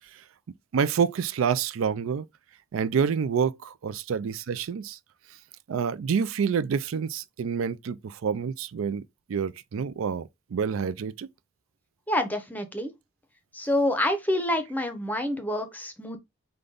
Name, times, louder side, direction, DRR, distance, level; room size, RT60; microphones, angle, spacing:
voice 1, 0.7-2.3 2.7-5.0 5.7-9.0 9.3-11.3, right 6 dB, 85° right, 0.4 m, -27 dB
voice 2, 12.1-12.9 13.5-16.2, left 1 dB, 10° left, 0.6 m, -27 dB
5.0 x 2.2 x 3.8 m
head